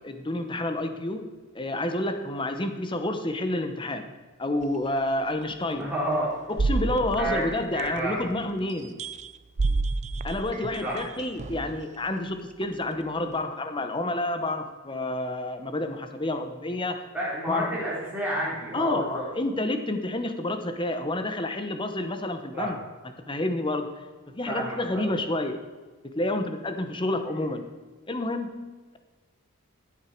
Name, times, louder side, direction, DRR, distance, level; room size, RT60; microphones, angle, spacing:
voice 1, 0.0-4.1 4.4-5.9 6.5-9.0 10.2-17.0 17.5-17.8 18.7-22.8 23.3-23.9 24.3-25.6 26.0-27.7 28.1-29.0, left 1 dB, 20° left, 7 dB, 0.9 m, -29 dB
sound 1, 4.6-4.7 5.4-5.5 6.6-8.3 8.7-11.8 12.6-12.7, right 3 dB, 30° right, 0.4 m, -30 dB
voice 2, 5.8-6.3 7.2-7.4 7.7-8.3 10.8-11.1 17.1-19.2 22.5-22.8 24.5-25.1, right 1 dB, 10° right, -7 dB, 4.0 m, -30 dB
14.5 x 8.4 x 4.5 m, 1.4 s
head